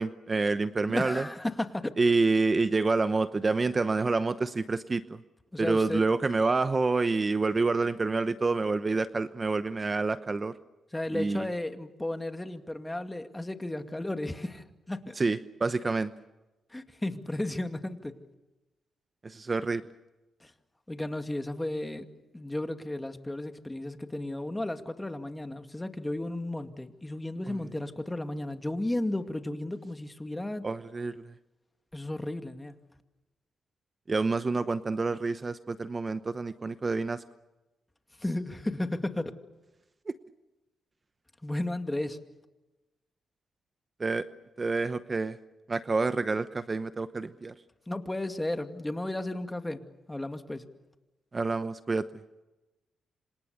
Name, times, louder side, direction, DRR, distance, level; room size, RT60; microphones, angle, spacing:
voice 1, 0.0-1.3 2.0-5.2 5.6-10.5 11.1-11.5 15.2-16.1 19.2-19.8 27.5-27.6 30.6-31.3 34.1-37.2 40.1-40.2 44.0-44.2 44.6-45.4 45.7-47.5 51.3-52.1, right 3 dB, 35° right, 12 dB, 0.9 m, -28 dB
voice 2, 0.9-1.9 5.5-6.0 10.9-15.1 16.7-18.1 20.4-20.5 20.9-22.1 22.3-30.6 31.9-32.8 38.2-39.3 41.4-42.2 47.9-50.6, left 1 dB, 15° left, 7 dB, 2.3 m, -34 dB
27.0 x 26.5 x 6.8 m, 1.1 s
cardioid pair, 70°, 0 cm